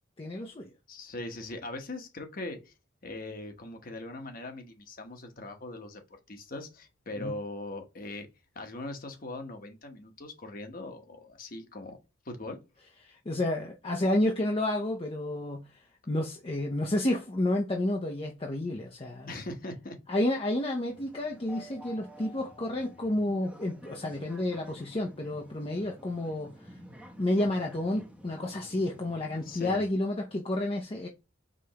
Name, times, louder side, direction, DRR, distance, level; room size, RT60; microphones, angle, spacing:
voice 1, 0.2-0.7 7.2-7.3 13.0-15.8 16.1-19.3 20.1-26.8 27.2-31.1, left 1 dB, 25° left, 0.6 m, -30 dB
voice 2, 0.9-2.7 3.0-6.0 6.3-8.3 8.5-12.0 12.2-12.6 19.3-20.0 29.4-29.8, left 2 dB, 45° left, 1.0 m, -40 dB
sound 1, 20.9-29.9, equal, 5° right, 0.7 m, -50 dB
5.1 x 3.4 x 2.8 m
head